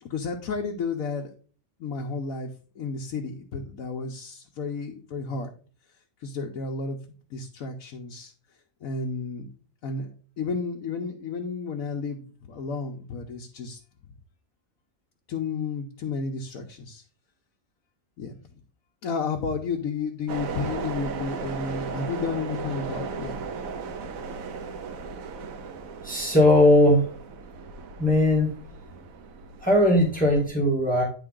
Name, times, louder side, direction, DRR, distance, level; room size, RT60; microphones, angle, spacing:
voice 1, 0.0-1.3 1.8-2.5 2.8-5.5 6.2-7.0 7.3-8.3 8.8-13.8 15.3-17.0 18.2-18.4 19.0-23.3, left 4 dB, 90° left, 1 dB, 1.2 m, -32 dB
sound 1, 20.3-30.5, right 5 dB, 90° right, 1.2 m, -36 dB
voice 2, 26.0-27.1 28.0-28.5 29.6-31.0, left 1 dB, 5° left, -3 dB, 2.1 m, -19 dB
9.6 x 3.8 x 3.7 m, 0.40 s
omnidirectional pair, 1.4 m